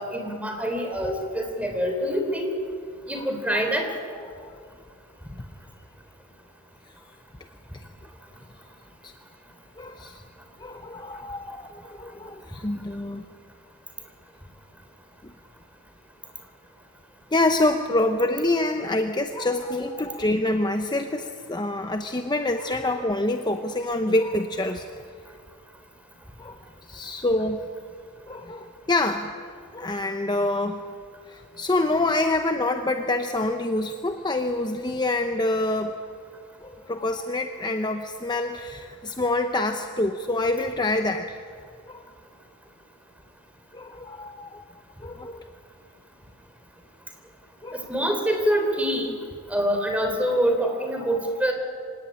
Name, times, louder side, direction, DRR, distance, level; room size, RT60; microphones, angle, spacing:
voice 1, 0.0-2.5 3.1-3.9 47.7-49.2 49.5-51.5, equal, 5° right, 4 dB, 3.5 m, -25 dB
voice 2, 9.8-10.2 10.6-13.2 15.2-15.3 17.3-24.9 26.4-27.6 28.2-29.3 29.7-30.8 31.3-36.0 36.6-41.4 41.9-42.0 43.7-44.6 45.0-45.5 47.6-48.1, left 2 dB, 20° left, 6 dB, 0.8 m, -26 dB
25.5 x 17.5 x 10.0 m, 2.2 s
head